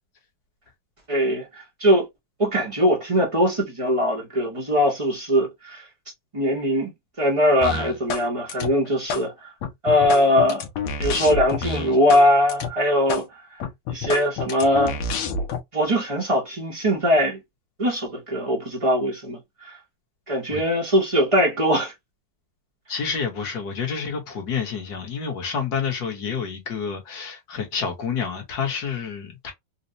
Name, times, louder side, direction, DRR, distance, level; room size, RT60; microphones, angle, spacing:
voice 1, 1.1-2.1 2.4-5.8 6.3-6.9 7.2-9.5 9.8-10.7 11.0-13.2 13.5-13.6 13.9-14.9 15.7-17.4 17.8-19.8 20.3-21.9, equal, 45° right, 0.4 m, -21 dB
sound 1, 7.6-8.2 8.5-9.2 9.6-12.2 12.5-12.7 13.1-13.2 13.6-15.6, left 4 dB, 85° left, 1.5 m, -28 dB
voice 2, 22.9-29.5, left 6 dB, 55° left, 1.4 m, -29 dB
4.2 x 2.1 x 2.6 m
omnidirectional pair, 2.2 m